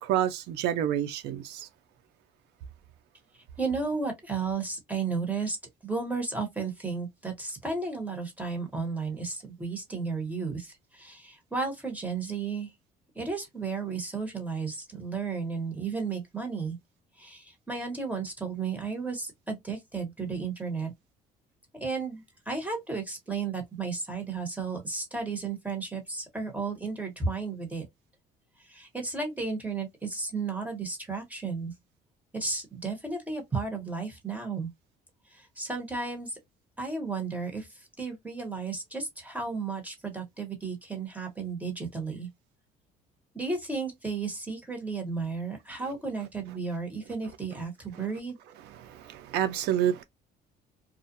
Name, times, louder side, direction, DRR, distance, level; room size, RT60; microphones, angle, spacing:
voice 1, 0.0-1.7 48.8-50.0, right 10 dB, 80° right, 0.4 m, -28 dB
voice 2, 3.3-5.6 5.8-12.7 13.1-16.8 17.2-20.9 21.8-27.9 28.6-31.7 32.3-34.7 35.3-36.4 36.8-42.3 43.3-48.4, right 4 dB, 10° right, 1.1 m, -33 dB
2.4 x 2.1 x 2.7 m
cardioid pair, 110°, 17 cm